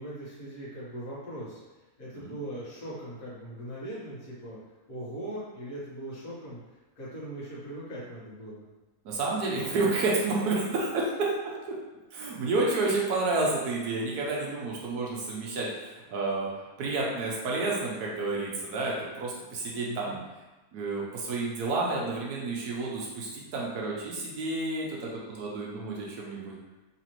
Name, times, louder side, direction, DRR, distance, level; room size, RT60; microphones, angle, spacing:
voice 1, 0.0-1.6 2.0-4.6 4.9-6.6 7.0-8.6 19.8-20.2, right 1 dB, 65° left, -8 dB, 1.7 m, -40 dB
voice 2, 9.0-11.3 11.6-11.7 12.1-20.2 20.7-26.6, right 3 dB, 90° right, -3 dB, 1.4 m, -30 dB
4.0 x 3.0 x 3.0 m, 1.1 s
omnidirectional pair, 1.6 m